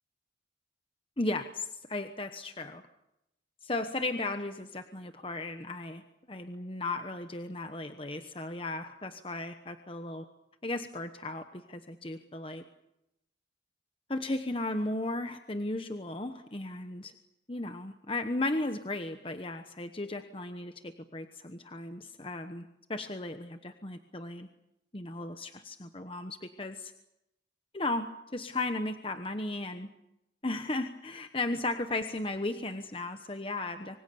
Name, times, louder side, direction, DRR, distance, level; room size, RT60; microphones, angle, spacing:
voice 1, 1.2-2.8 3.6-6.0 6.3-10.3 10.6-12.6 14.1-17.1 17.5-24.5 24.9-26.9 27.7-29.9 30.4-34.0, left 2 dB, 30° left, 8 dB, 1.1 m, -35 dB
26.0 x 24.5 x 7.0 m, 0.85 s
head